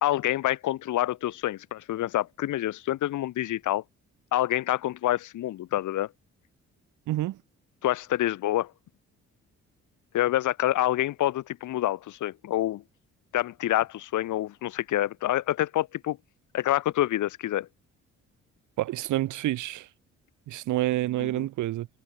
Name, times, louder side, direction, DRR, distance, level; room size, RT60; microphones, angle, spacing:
voice 1, 0.0-3.8 4.3-6.1 7.8-8.7 10.1-12.8 13.3-16.2 16.5-17.7 21.2-21.5, left 14 dB, 75° left, 1.7 m, -27 dB
voice 2, 7.1-7.4 18.8-19.9 20.5-21.9, right 15 dB, 75° right, 0.9 m, -28 dB
cardioid pair, 90°, 30 cm